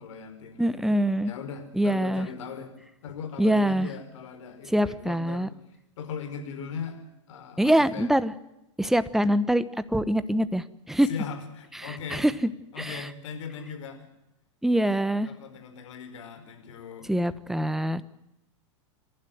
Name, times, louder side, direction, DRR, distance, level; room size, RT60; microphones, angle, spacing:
voice 1, 0.0-1.0 1.3-2.7 3.0-5.5 6.0-7.0 7.3-8.1 11.0-12.2 12.7-14.1 15.2-17.1, left 6 dB, 70° left, 7 dB, 4.9 m, -39 dB
voice 2, 0.6-1.3 1.7-2.3 3.4-3.9 4.7-5.5 7.6-8.3 8.8-9.6 9.9-11.1 11.8-12.3 12.8-13.1 14.6-15.3 17.1-18.0, right 1 dB, ahead, 14 dB, 1.1 m, -24 dB
29.0 x 12.0 x 9.3 m, 0.89 s
hypercardioid pair, 110°, 16 cm